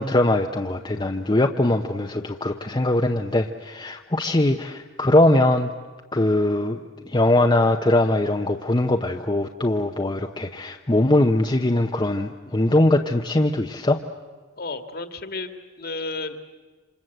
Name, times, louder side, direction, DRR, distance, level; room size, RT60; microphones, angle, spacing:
voice 1, 0.0-5.7 6.1-14.0, left 1 dB, 20° left, 3 dB, 0.8 m, -21 dB
voice 2, 14.6-16.4, left 3 dB, 45° left, 9 dB, 1.8 m, -32 dB
28.0 x 26.5 x 7.9 m, 1.4 s
head